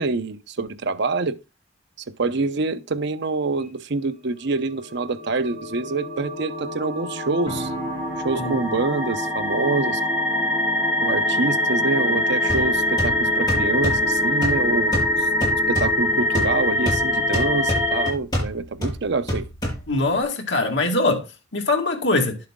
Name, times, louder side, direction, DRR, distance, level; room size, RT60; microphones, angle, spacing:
voice 1, 0.0-1.4 2.2-7.7 8.2-10.0 11.0-19.5, right 3 dB, 60° right, 0.7 m, -26 dB
sound 1, 4.8-18.1, left 1 dB, 10° right, 6.3 m, -24 dB
sound 2, 7.5-17.2, right 1 dB, 25° right, 5.8 m, -40 dB
sound 3, 12.5-20.2, equal, 20° left, 7.1 m, -30 dB
voice 2, 19.9-22.4, left 2 dB, 60° left, 2.1 m, -22 dB
11.0 x 7.5 x 3.7 m
head